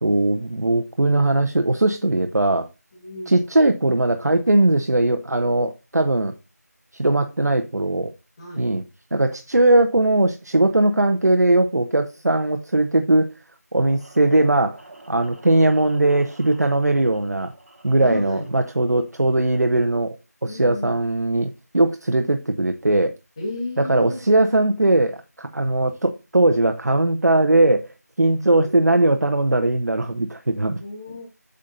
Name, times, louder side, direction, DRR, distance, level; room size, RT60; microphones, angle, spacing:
voice 1, 0.0-2.7 3.3-6.3 6.9-8.1 8.6-8.8 9.1-13.3 13.7-14.8 15.1-17.5 17.8-20.2 20.4-23.1 23.8-27.9 28.2-30.8, right 2 dB, 70° right, 0.9 m, -19 dB
voice 2, 2.9-3.5 8.4-8.7 18.0-18.5 20.4-20.9 23.4-24.2 28.2-28.9 30.8-31.3, left 1 dB, 20° left, 1.6 m, -33 dB
sound 1, 13.8-19.7, right 2 dB, 35° right, 3.7 m, -48 dB
8.3 x 6.5 x 2.6 m
figure-of-eight pair, 170°, 9 cm